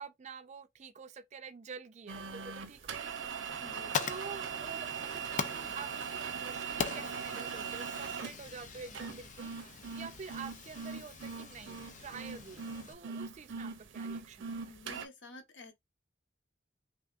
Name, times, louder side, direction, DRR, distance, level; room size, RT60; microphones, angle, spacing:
voice 1, 0.0-14.8, right 5 dB, 35° right, 0.4 m, -48 dB
sound 1, 2.1-15.1, right 6 dB, 80° right, 0.6 m, -40 dB
Fire, 3.5-12.9, left 6 dB, 40° left, 0.4 m, -42 dB
voice 2, 3.6-3.9 14.7-15.7, left 2 dB, 70° left, 1.0 m, -50 dB
3.4 x 3.3 x 2.4 m
head